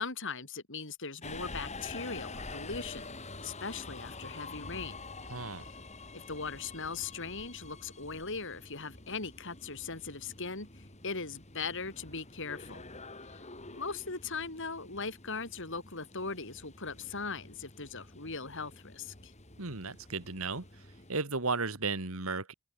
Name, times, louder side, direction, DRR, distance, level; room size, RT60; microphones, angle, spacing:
voice 1, 0.0-3.1 3.4-5.0 5.6-5.7 6.1-12.8 13.7-19.3, left 4 dB, 60° left, 5.2 m, -39 dB
Subway metro underground, 1.2-21.1, left 3 dB, 30° left, 7.7 m, -47 dB
voice 2, 5.3-5.7 19.6-20.6 21.1-22.5, right 4 dB, 70° right, 2.5 m, -34 dB
head